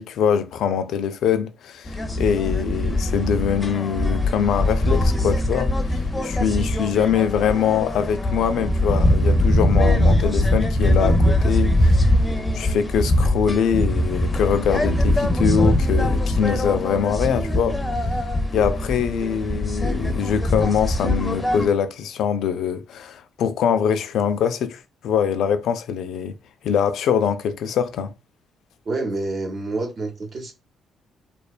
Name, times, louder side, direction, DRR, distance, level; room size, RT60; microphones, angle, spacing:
voice 1, 0.0-12.0 12.5-17.8 18.5-26.4 26.6-28.1, left 7 dB, 75° left, 0.3 m, -23 dB
sound 1, 1.9-21.7, left 1 dB, 15° left, 0.5 m, -21 dB
voice 2, 28.8-30.5, right 2 dB, 45° right, 0.8 m, -27 dB
2.7 x 2.1 x 2.3 m
cardioid pair, 90°, 0 cm